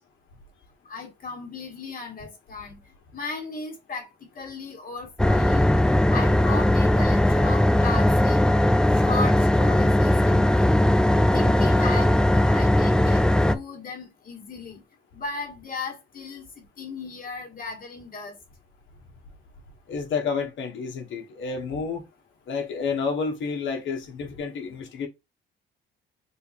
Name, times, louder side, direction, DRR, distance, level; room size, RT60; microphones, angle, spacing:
voice 1, 0.9-2.8 3.1-4.1 4.4-5.7 6.1-8.4 8.9-10.7 11.3-14.8 15.1-18.4, left 4 dB, 45° left, 2.1 m, -36 dB
sound 1, 5.2-13.5, left 1 dB, 5° left, 0.5 m, -19 dB
voice 2, 19.9-22.0 22.5-25.1, left 5 dB, 75° left, 1.6 m, -30 dB
3.9 x 2.8 x 4.4 m
cardioid pair, 90°, 20 cm